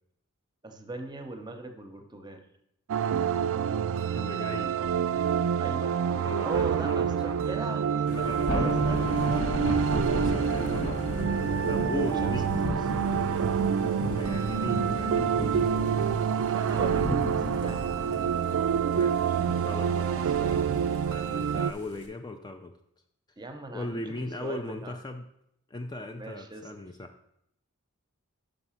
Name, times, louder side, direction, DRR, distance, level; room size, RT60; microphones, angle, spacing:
voice 1, 0.6-2.4 5.6-6.0 6.4-8.1 8.5-9.6 11.9-13.0 16.5-17.9 21.5-21.7 23.4-24.1 24.4-24.9 26.1-26.7, right 2 dB, 20° right, 6 dB, 0.7 m, -39 dB
sound 1, 2.9-21.7, right 7 dB, 65° right, 0.3 m, -27 dB
voice 2, 4.1-4.8 6.1-7.4 8.1-9.1 9.9-11.1 11.7-12.5 14.2-15.9 18.9-22.7 23.7-25.2 25.7-27.1, left 2 dB, 20° left, 5 dB, 0.4 m, -39 dB
Thunder / Rain, 8.1-22.1, left 1 dB, 75° left, 1.4 m, -34 dB
5.9 x 5.3 x 5.7 m, 0.78 s
head